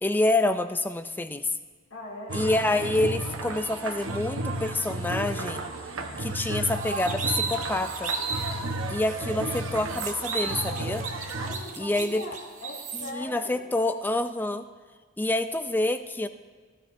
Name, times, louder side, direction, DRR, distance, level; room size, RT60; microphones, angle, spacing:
voice 1, 0.0-1.5 2.3-5.6 6.2-8.1 8.9-11.0 11.8-12.2 13.1-14.7 15.2-16.3, left 2 dB, 10° left, 9 dB, 0.3 m, -27 dB
voice 2, 1.9-2.5 5.4-5.5 11.4-13.6, left 1 dB, 85° left, -3 dB, 2.7 m, -40 dB
sound 1, 2.3-11.5, right 2 dB, 80° right, 1.0 m, -33 dB
sound 2, 6.8-8.6 9.1-9.2 9.5-13.1, right 5 dB, 40° right, 1.1 m, -34 dB
18.0 x 12.5 x 2.6 m, 1.5 s
head